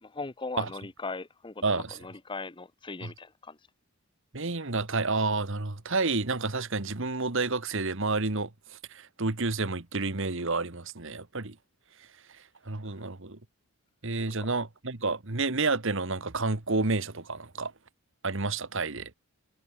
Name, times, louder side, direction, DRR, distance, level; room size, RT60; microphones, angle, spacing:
voice 1, 0.0-3.6, left 3 dB, 20° left, 0.7 m, -39 dB
voice 2, 1.6-2.1 3.0-3.1 4.3-11.6 12.0-13.4 14.0-17.7 18.2-19.1, right 3 dB, 60° right, 1.6 m, -30 dB
head